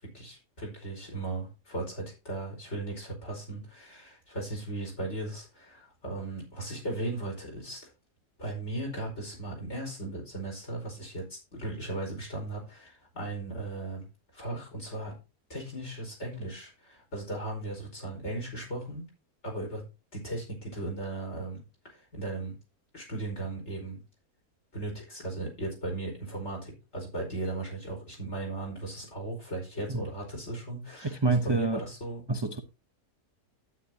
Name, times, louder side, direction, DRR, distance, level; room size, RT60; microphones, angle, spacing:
voice 1, 0.0-7.9 8.4-14.1 14.3-15.1 15.5-19.0 19.4-19.9 20.1-22.6 22.9-24.0 24.7-32.2, right 2 dB, 45° left, 5.2 m, -37 dB
voice 2, 31.2-31.8 32.3-32.6, right 3 dB, 25° right, 0.6 m, -26 dB
12.0 x 9.7 x 2.8 m
omnidirectional pair, 1.6 m